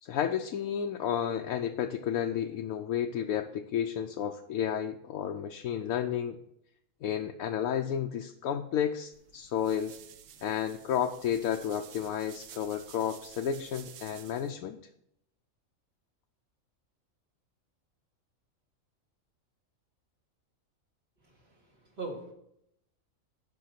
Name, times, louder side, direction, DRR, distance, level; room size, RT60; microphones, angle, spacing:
voice 1, 0.0-6.4 7.0-9.9 10.4-14.8, left 9 dB, 80° left, 4 dB, 1.0 m, -32 dB
sound 1, 9.1-14.5, right 9 dB, 70° right, 1.0 m, -52 dB
voice 2, 21.2-22.3, right 3 dB, 45° right, -1 dB, 2.6 m, -42 dB
11.0 x 5.5 x 5.8 m, 0.76 s
omnidirectional pair, 1.4 m